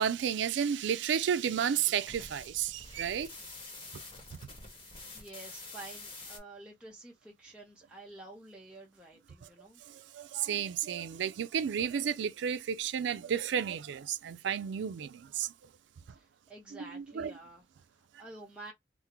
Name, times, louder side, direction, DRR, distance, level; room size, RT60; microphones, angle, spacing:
voice 1, 0.0-3.3 9.9-15.5 16.8-17.3, right 8 dB, 80° right, 0.3 m, -32 dB
sound 1, 0.8-6.4, left 2 dB, 30° left, 0.9 m, -48 dB
voice 2, 4.7-9.8 16.1-18.7, right 2 dB, 5° right, 0.6 m, -50 dB
3.5 x 2.0 x 2.9 m
head